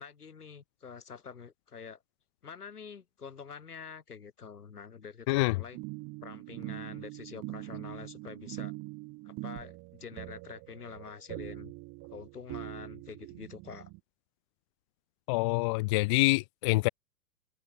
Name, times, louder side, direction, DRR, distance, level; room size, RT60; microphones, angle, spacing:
voice 1, 0.0-2.0 2.4-5.8 6.2-8.7 9.2-11.7 12.1-13.9, left 6 dB, 80° left, 7.2 m, -46 dB
sound 1, 5.7-14.0, right 25 dB, 35° right, 5.2 m, -43 dB
voice 2, 15.3-16.9, left 24 dB, 20° left, 0.5 m, -26 dB
figure-of-eight pair, 115°, 45 cm